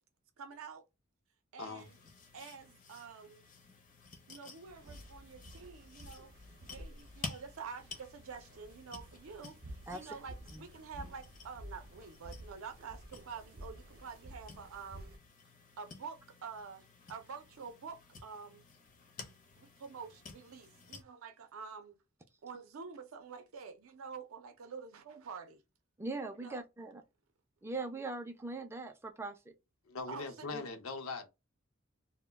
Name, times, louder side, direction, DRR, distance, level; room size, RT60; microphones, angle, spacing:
voice 1, 0.4-0.8 1.5-2.0 2.3-3.5 4.3-6.3 6.7-15.1 15.8-18.6 19.6-22.0 22.4-25.6 26.4-26.6 30.1-30.5, right 5 dB, 80° right, 0.5 m, -48 dB
sound 1, 1.8-21.0, left 4 dB, 40° left, 0.5 m, -53 dB
sound 2, 4.7-15.2, right 1 dB, 45° right, 0.7 m, -52 dB
voice 2, 26.0-27.0 27.6-29.5 30.5-30.7, right 3 dB, 10° right, 0.3 m, -41 dB
voice 3, 29.9-31.3, left 4 dB, 80° left, 0.6 m, -41 dB
2.2 x 2.1 x 3.3 m
head